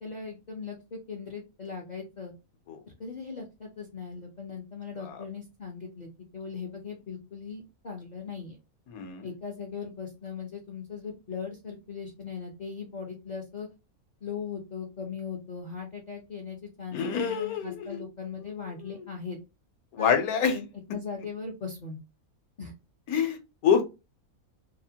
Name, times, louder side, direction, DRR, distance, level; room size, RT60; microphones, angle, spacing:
voice 1, 0.0-2.3 3.0-6.1 6.3-8.6 9.2-13.7 14.2-19.4 20.0-20.2 20.5-22.0 22.6-22.7, left 5 dB, 55° left, 0.4 m, -39 dB
voice 2, 8.9-9.3 16.9-18.0 18.9-19.0 19.9-20.6 23.1-23.8, left 7 dB, 75° left, 1.2 m, -26 dB
2.9 x 2.1 x 2.7 m
omnidirectional pair, 1.5 m